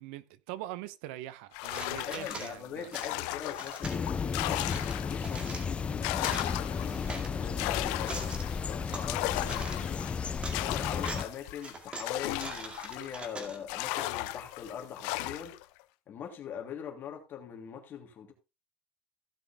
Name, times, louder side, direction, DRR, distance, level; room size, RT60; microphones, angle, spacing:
voice 1, 0.0-2.9, right 15 dB, 75° right, 0.8 m, -42 dB
sound 1, 1.5-5.4 5.8-13.3 13.7-15.6, left 18 dB, 70° left, 0.8 m, -36 dB
sound 2, 1.6-2.5 2.9-4.0 4.5-5.7 6.1-7.3 7.8-9.1 9.5-9.9 10.2-10.6 11.0-11.3 11.6-14.3, right 2 dB, 20° right, 2.3 m, -43 dB
voice 2, 2.0-4.6 5.1-8.3 8.7-10.0 10.5-15.6 16.1-18.3, left 8 dB, 35° left, 2.9 m, -42 dB
sound 3, 3.8-11.2, left 6 dB, 20° left, 0.7 m, -34 dB
16.0 x 6.2 x 3.6 m
cardioid pair, 150°, 6 cm